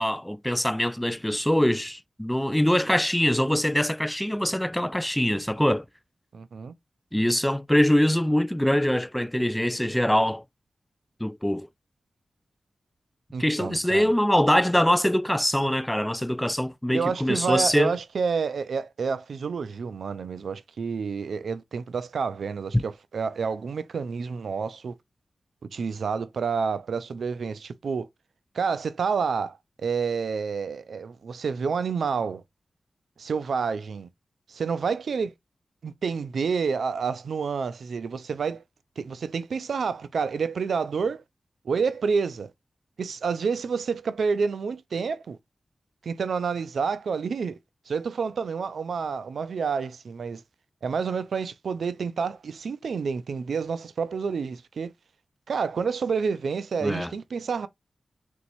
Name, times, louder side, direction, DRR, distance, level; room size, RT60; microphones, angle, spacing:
voice 1, 0.0-5.9 7.1-10.4 11.2-11.7 13.4-17.9 22.7-22.8 56.8-57.1, left 1 dB, 5° left, 0.3 m, -23 dB
voice 2, 6.3-6.7 13.3-14.1 16.9-24.9 25.7-28.1 28.5-32.4 33.2-34.1 34.5-35.3 35.8-38.6 39.0-41.2 41.7-42.5 43.0-45.4 46.0-47.6 47.9-50.4 50.8-54.9 55.5-57.7, right 5 dB, 80° right, 0.4 m, -29 dB
4.6 x 4.0 x 2.6 m
cardioid pair, 50°, 0 cm